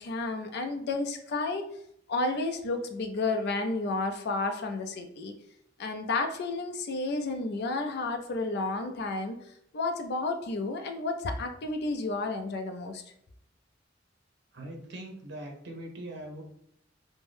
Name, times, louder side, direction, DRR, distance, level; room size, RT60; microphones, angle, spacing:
voice 1, 0.0-1.7 2.1-5.3 5.8-9.4 9.7-13.0, left 3 dB, 60° left, 5 dB, 0.4 m, -31 dB
voice 2, 14.5-16.4, right 1 dB, 65° right, 1 dB, 0.8 m, -41 dB
2.6 x 2.1 x 3.3 m, 0.74 s
head